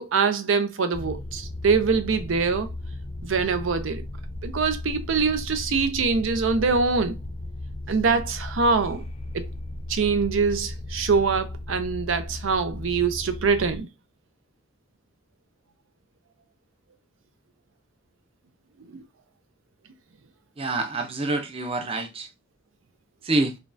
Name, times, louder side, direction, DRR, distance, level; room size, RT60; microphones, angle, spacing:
voice 1, 0.0-2.7 3.2-4.0 4.4-7.2 7.9-9.0 9.3-9.5 9.9-13.9 18.9-19.0, right 5 dB, 85° right, 0.5 m, -24 dB
sound 1, 0.9-13.8, left 1 dB, 30° left, 0.5 m, -36 dB
voice 2, 20.6-22.3 23.2-23.6, right 2 dB, 30° right, 0.5 m, -26 dB
5.0 x 2.3 x 2.6 m
head